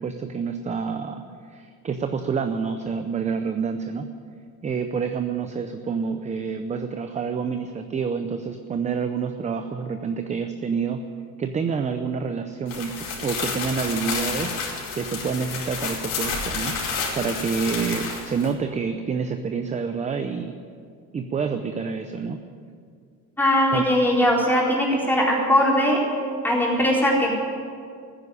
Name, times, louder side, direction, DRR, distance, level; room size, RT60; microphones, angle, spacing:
voice 1, 0.0-4.1 4.6-11.0 11.4-14.6 14.9-16.8 17.2-20.6 21.1-22.4 23.7-23.9, right 5 dB, 20° right, 8 dB, 0.6 m, -28 dB
sound 1, 12.7-18.5, left 5 dB, 70° left, 4.9 m, -30 dB
voice 2, 23.4-26.0 26.4-27.3, equal, 5° left, -4 dB, 4.1 m, -20 dB
14.5 x 10.0 x 9.9 m, 2.2 s
cardioid pair, 145°, 33 cm